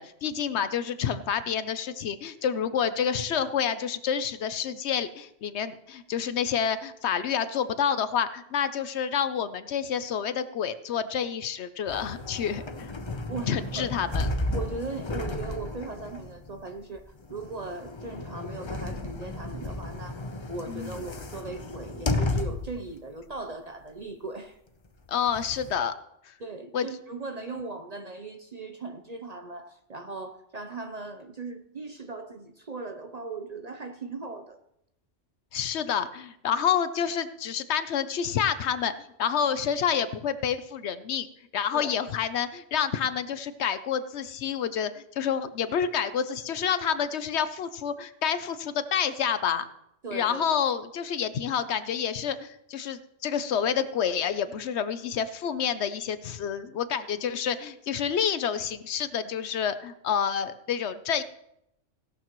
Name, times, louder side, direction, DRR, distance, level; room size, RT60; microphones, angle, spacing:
voice 1, 0.0-12.9 13.5-14.3 20.7-21.0 25.1-25.9 26.7-26.9 35.5-38.9 39.2-41.3 41.5-49.7 50.1-61.2, left 8 dB, 65° left, 13 dB, 0.9 m, -28 dB
sound 1, 11.9-22.8 23.3-23.4 24.9-25.7, left 2 dB, 30° left, 0.6 m, -33 dB
voice 2, 13.3-13.9 14.5-24.6 26.4-34.6 41.7-42.0 50.0-50.6, right 3 dB, 40° right, 7 dB, 0.6 m, -38 dB
16.5 x 12.0 x 3.0 m, 0.80 s
omnidirectional pair, 1.3 m